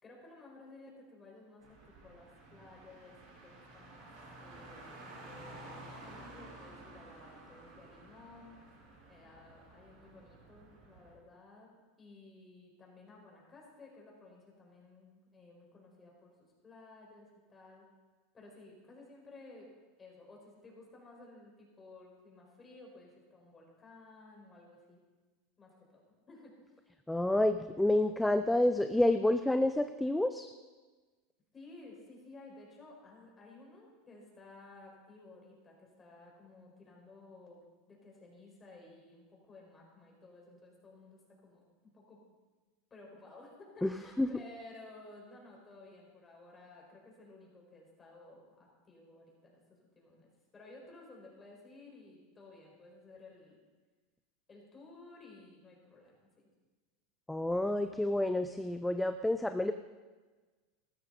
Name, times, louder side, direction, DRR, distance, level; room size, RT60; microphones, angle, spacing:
voice 1, 0.0-4.1 4.4-8.6 9.1-16.3 16.6-17.9 18.3-19.7 20.0-25.0 25.6-26.8 31.5-42.2 42.9-53.6 54.5-56.3, left 2 dB, 25° left, -1 dB, 4.9 m, -55 dB
Car, 1.6-11.1, right 2 dB, 65° right, 4.8 m, -52 dB
voice 2, 27.1-30.5 43.8-44.3 57.3-59.7, left 1 dB, 5° left, 9 dB, 0.5 m, -29 dB
14.5 x 12.5 x 4.1 m, 1.3 s
hypercardioid pair, 95°, 0 cm